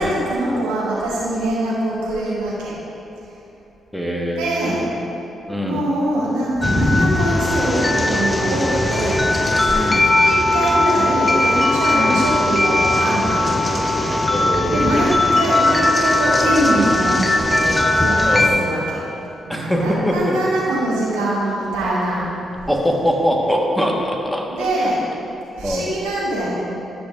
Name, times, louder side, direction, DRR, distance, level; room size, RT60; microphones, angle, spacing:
voice 1, 0.0-2.8 4.4-4.8 5.6-13.6 14.7-19.0 19.4-22.2 24.5-25.1 25.5-26.5, right 1 dB, 85° right, -7 dB, 1.7 m, -23 dB
voice 2, 3.9-4.8 5.5-5.8 9.7-10.1 11.9-12.2 14.3-15.3 15.6-15.8 18.2-18.8 19.5-20.4 22.7-24.7 25.6-25.9, equal, 5° left, 0 dB, 1.3 m, -22 dB
sound 1, 6.6-18.5, left 2 dB, 25° left, 0.7 m, -18 dB
12.0 x 6.0 x 2.5 m, 2.9 s
hypercardioid pair, 40°, 0 cm